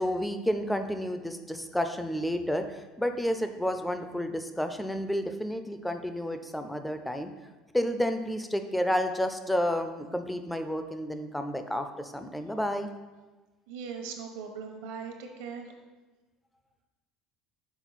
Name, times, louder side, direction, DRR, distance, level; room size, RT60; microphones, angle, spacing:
voice 1, 0.0-7.3 7.7-12.9, equal, 5° left, 7 dB, 0.3 m, -30 dB
voice 2, 13.7-15.7, right 6 dB, 85° right, 3 dB, 1.0 m, -39 dB
6.1 x 4.3 x 4.0 m, 1.2 s
cardioid pair, 160°, 0 cm